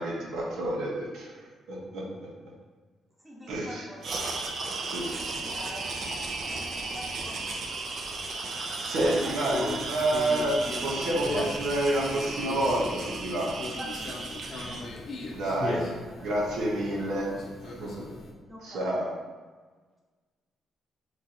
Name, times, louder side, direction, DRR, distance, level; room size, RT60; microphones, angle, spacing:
voice 1, 0.0-2.3 3.5-3.9 4.8-5.4 5.8-5.9 8.4-8.5 8.8-13.5 15.3-15.9 16.2-17.3 17.6-18.0 18.6-19.1, right 1 dB, 80° right, -3 dB, 0.8 m, -29 dB
voice 2, 3.2-4.7 5.4-5.9 6.4-7.4 9.2-10.3 13.8-15.1 15.4-16.3 18.5-18.9, equal, 5° right, -4 dB, 0.9 m, -45 dB
sound 1, 4.0-14.8, right 3 dB, 55° right, 0.5 m, -35 dB
Conversation, 9.5-18.3, left 2 dB, 55° left, 0.6 m, -38 dB
3.1 x 2.6 x 4.0 m, 1.4 s
cardioid pair, 90°, 0 cm